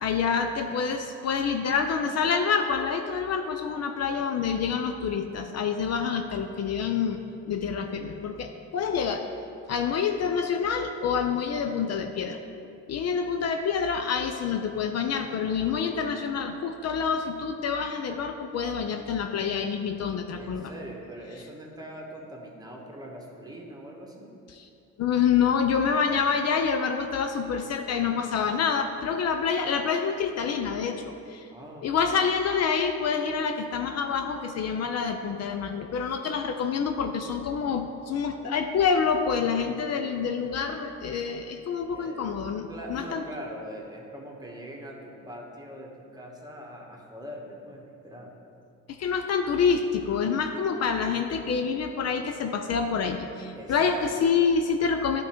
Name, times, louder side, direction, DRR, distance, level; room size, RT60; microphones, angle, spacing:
voice 1, 0.0-7.2 7.5-9.2 9.7-12.4 12.9-20.7 24.5-24.7 25.0-31.5 31.8-43.2 48.9-55.2, left 6 dB, 55° left, 5 dB, 0.5 m, -27 dB
voice 2, 20.4-24.3 31.5-32.0 41.9-48.3 53.5-54.2, equal, 15° right, -1 dB, 1.3 m, -42 dB
10.5 x 3.7 x 4.5 m, 2.6 s
cardioid pair, 90°, 30 cm